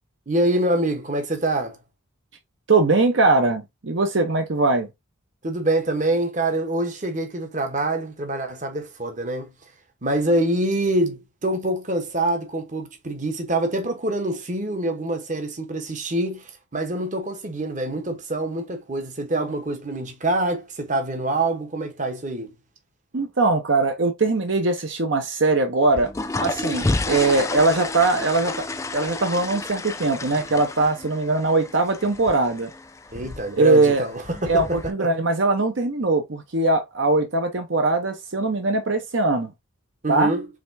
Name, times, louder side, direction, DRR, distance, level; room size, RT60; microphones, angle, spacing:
voice 1, 0.3-1.8 5.4-9.5 10.0-22.5 33.1-35.1 40.0-40.5, right 1 dB, 35° right, 1.0 m, -25 dB
voice 2, 2.7-4.9 23.1-26.1 26.4-28.7 28.9-32.7 33.6-34.0 34.5-39.5 40.1-40.3, right 3 dB, 60° right, 0.8 m, -21 dB
sound 1, 25.8-34.9, left 2 dB, 15° left, 0.3 m, -31 dB
5.1 x 3.4 x 2.6 m
head